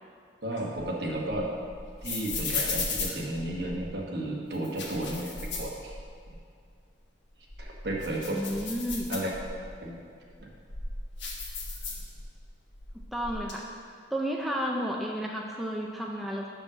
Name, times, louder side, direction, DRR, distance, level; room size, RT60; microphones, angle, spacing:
voice 1, 0.4-1.4 2.0-6.0 7.6-8.4 9.1-9.3 9.8-10.0 10.4-10.5, right 1 dB, 60° right, -2 dB, 1.2 m, -33 dB
sound 1, 0.5-3.9 4.5-6.4 6.7-6.8 7.3-9.7 10.3-12.4 12.7-13.5, left 3 dB, 80° left, 1.3 m, -36 dB
voice 2, 8.3-9.1 13.1-13.7 14.1-16.5, equal, ahead, -2 dB, 0.4 m, -32 dB
6.1 x 5.3 x 6.1 m, 2.2 s
head